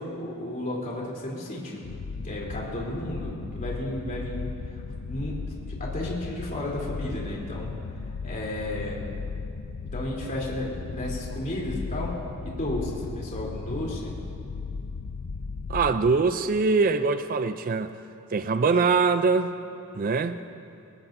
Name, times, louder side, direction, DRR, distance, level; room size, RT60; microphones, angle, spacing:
voice 1, 0.0-1.8 2.2-9.1 9.9-12.1 12.4-14.1, left 1 dB, 35° left, -4 dB, 3.3 m, -33 dB
sound 1, 1.8-16.2, left 4 dB, 80° left, 0.5 m, -36 dB
voice 2, 15.7-17.9 18.3-19.5 19.9-20.4, right 4 dB, 40° right, 11 dB, 0.4 m, -23 dB
20.5 x 19.0 x 2.6 m, 2.5 s
head